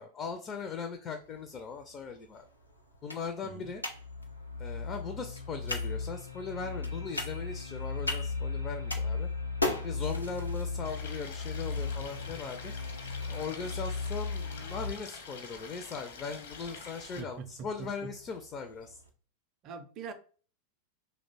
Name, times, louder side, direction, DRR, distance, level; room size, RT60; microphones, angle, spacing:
voice 1, 0.0-2.4 3.0-3.8 4.6-9.3 9.8-12.7 13.3-19.0, left 5 dB, 30° left, 0.4 m, -39 dB
sound 1, 1.2-19.1, left 2 dB, 85° left, 0.5 m, -43 dB
sound 2, 3.6-14.9, left 4 dB, 90° right, 0.5 m, -37 dB
Stream, 10.8-17.2, left 5 dB, 60° left, 0.8 m, -46 dB
voice 2, 17.2-18.1 19.6-20.1, right 6 dB, 35° right, 0.5 m, -43 dB
2.9 x 2.1 x 4.0 m
figure-of-eight pair, 90°, 0 cm